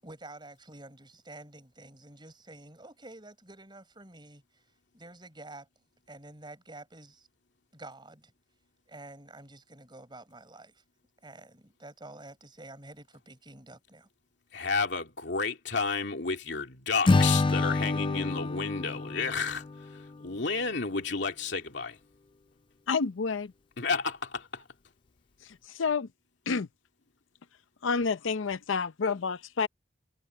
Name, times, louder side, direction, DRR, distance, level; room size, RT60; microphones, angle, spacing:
voice 1, 0.0-4.6 4.9-7.3 7.7-8.3 8.9-10.8 11.2-14.1, right 2 dB, 25° right, 7.4 m, -49 dB
voice 2, 14.5-22.0 23.8-24.7, left 4 dB, 65° left, 2.6 m, -31 dB
Acoustic guitar / Strum, 17.1-20.3, left 3 dB, 25° left, 0.4 m, -27 dB
voice 3, 22.9-23.5 25.4-26.1 26.5-26.7 27.8-29.7, left 5 dB, 85° left, 0.6 m, -29 dB
head